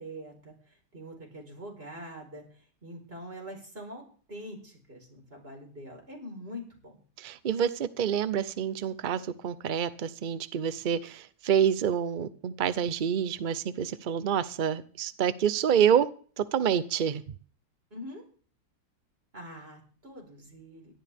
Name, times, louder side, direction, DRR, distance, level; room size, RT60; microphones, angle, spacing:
voice 1, 0.0-7.0 17.9-18.2 19.3-20.9, equal, 35° right, 1 dB, 4.7 m, -44 dB
voice 2, 7.2-16.1 16.4-17.2, right 8 dB, 80° right, 14 dB, 0.4 m, -27 dB
17.5 x 12.0 x 3.5 m, 0.43 s
omnidirectional pair, 1.8 m